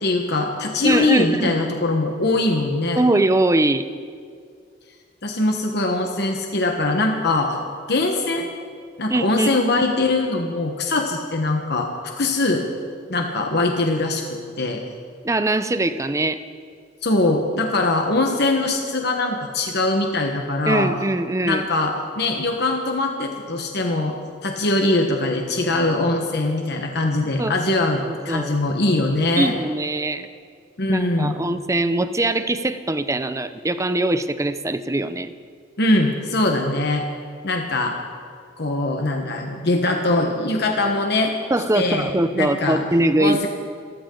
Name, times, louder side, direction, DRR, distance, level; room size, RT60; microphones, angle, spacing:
voice 1, 0.0-3.0 5.2-7.6 7.9-8.5 9.0-12.6 13.1-14.2 14.6-14.8 17.0-20.9 21.4-24.1 24.4-29.5 30.8-31.4 35.8-37.0 37.4-38.0 38.6-41.3 41.7-42.8 43.2-43.5, left 2 dB, 60° left, 2 dB, 1.3 m, -22 dB
voice 2, 0.8-1.6 3.0-3.9 9.1-9.5 15.2-16.4 20.7-21.6 27.4-27.7 28.1-28.6 29.4-30.3 30.9-35.3 41.5-43.5, right 2 dB, 15° right, 11 dB, 0.6 m, -22 dB
26.5 x 14.0 x 3.9 m, 2.2 s
head